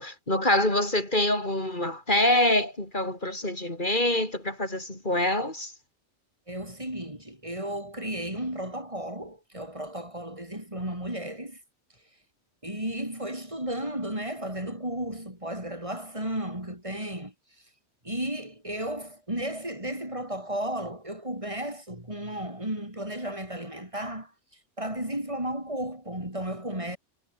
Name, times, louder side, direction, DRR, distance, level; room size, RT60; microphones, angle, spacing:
voice 1, 0.0-5.7, left 1 dB, 40° left, 5.6 m, -25 dB
voice 2, 6.5-11.6 12.6-17.3 18.0-24.3 24.8-27.0, right 1 dB, 25° right, 7.4 m, -34 dB
omnidirectional pair, 1.2 m